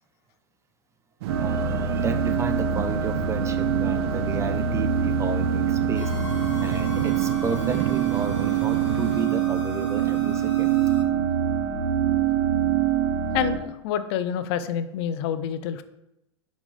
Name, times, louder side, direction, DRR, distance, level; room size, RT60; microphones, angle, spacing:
sound 1, 1.2-9.3, right 13 dB, 60° right, 0.4 m, -32 dB
sound 2, 1.3-13.6, right 8 dB, 80° right, 1.9 m, -25 dB
voice 1, 1.4-6.1 6.6-10.9, right 5 dB, 20° right, 8 dB, 0.6 m, -32 dB
sound 3, 5.9-11.0, left 4 dB, 80° left, 1.0 m, -42 dB
voice 2, 13.3-15.8, left 9 dB, 60° left, 12 dB, 0.5 m, -27 dB
7.0 x 5.2 x 3.3 m, 0.87 s
hypercardioid pair, 125°, 15 cm